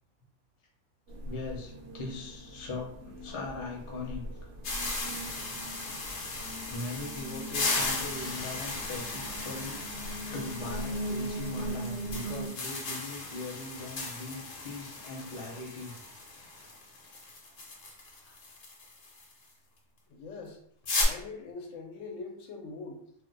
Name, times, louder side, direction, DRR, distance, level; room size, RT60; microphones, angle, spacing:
sound 1, 1.1-12.5, right 1 dB, 65° right, 0.8 m, -40 dB
voice 1, 1.2-4.2 6.0-6.2 6.7-15.9 16.6-16.7 18.2-18.4, left 3 dB, 35° left, -2 dB, 0.6 m, -40 dB
sound 2, 4.6-19.3 20.9-21.0, left 3 dB, 55° left, 0.9 m, -36 dB
voice 2, 20.1-20.6 21.0-23.1, left 4 dB, 85° left, 2 dB, 1.0 m, -42 dB
2.5 x 2.1 x 3.8 m, 0.69 s
omnidirectional pair, 1.3 m